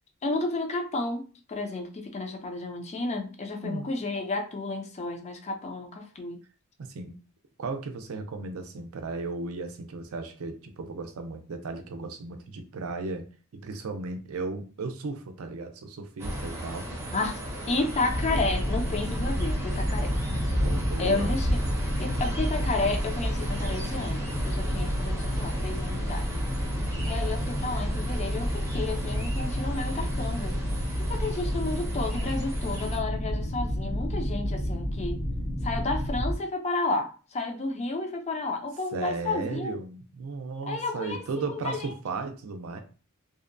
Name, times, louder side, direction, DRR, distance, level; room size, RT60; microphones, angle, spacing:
voice 1, 0.2-6.4 17.1-17.4 17.7-20.1 21.0-21.6 22.0-26.3 27.0-30.6 31.0-35.2 35.6-39.8 40.7-41.9, left 3 dB, 30° left, 5 dB, 0.4 m, -32 dB
voice 2, 3.6-3.9 6.9-7.2 7.6-13.3 13.5-17.1 20.5-21.3 24.7-25.0 26.9-27.5 38.9-42.8, right 3 dB, 70° right, 6 dB, 0.4 m, -36 dB
sound 1, 16.2-33.0, equal, 15° right, 0.6 m, -35 dB
sound 2, 18.1-36.4, equal, 70° left, 0.8 m, -30 dB
2.7 x 2.1 x 2.5 m, 0.37 s
head